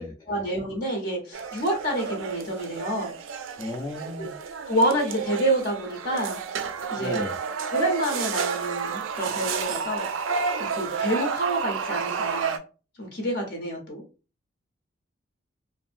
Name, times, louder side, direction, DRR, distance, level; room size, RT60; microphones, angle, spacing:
voice 1, 0.3-3.1 4.2-4.3 4.7-6.4 6.9-7.3 7.7-12.6 13.0-14.0, right 1 dB, 55° left, 1 dB, 0.7 m, -28 dB
sound 1, 1.3-12.6, right 6 dB, 90° right, 0.4 m, -31 dB
voice 2, 3.6-4.4 7.0-7.3, left 2 dB, 15° left, -5 dB, 0.4 m, -34 dB
2.6 x 2.5 x 2.5 m, 0.33 s
head